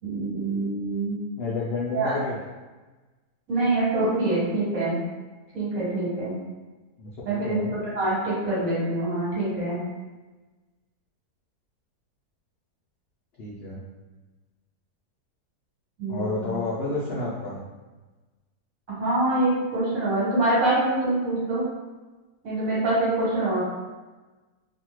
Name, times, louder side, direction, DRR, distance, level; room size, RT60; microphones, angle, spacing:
voice 1, 0.0-1.1 1.9-2.1 3.5-5.0 5.5-6.3 7.2-9.8 16.0-16.5 19.0-21.6 22.4-23.6, right 2 dB, 60° right, -8 dB, 1.5 m, -25 dB
voice 2, 1.4-2.4 7.0-7.7 13.4-13.8 16.1-17.6, left 3 dB, 75° left, -6 dB, 0.5 m, -30 dB
2.7 x 2.3 x 3.0 m, 1.2 s
omnidirectional pair, 1.7 m